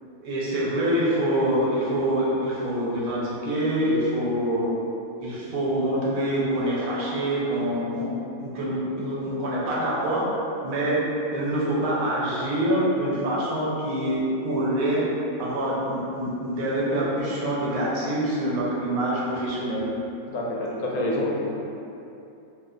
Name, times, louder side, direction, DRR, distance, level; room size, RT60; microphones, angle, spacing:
voice 1, 0.2-4.7 5.2-8.1 8.4-10.2 10.6-11.0 11.3-15.0 15.4-19.9, right 1 dB, 75° right, -6 dB, 1.1 m, -25 dB
voice 2, 20.3-21.5, left 1 dB, 80° left, -4 dB, 1.1 m, -27 dB
2.8 x 2.1 x 3.6 m, 2.8 s
omnidirectional pair, 1.5 m